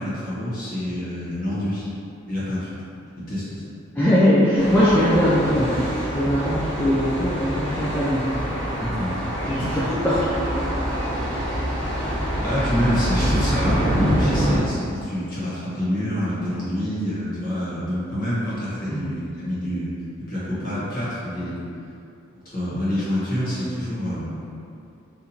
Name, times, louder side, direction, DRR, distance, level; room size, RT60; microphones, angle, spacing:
voice 1, 0.0-1.9 2.3-2.8 3.1-3.6 8.8-9.1 9.6-9.8 12.4-20.0 20.3-21.6 22.5-24.3, equal, 40° left, -10 dB, 1.2 m, -27 dB
voice 2, 4.0-8.4 9.5-10.3 11.0-11.2 18.9-19.1, equal, 10° left, -10 dB, 0.3 m, -21 dB
Thunder, 4.6-14.6, equal, 10° right, 1.3 m, -25 dB
4.0 x 2.6 x 2.8 m, 2.6 s
head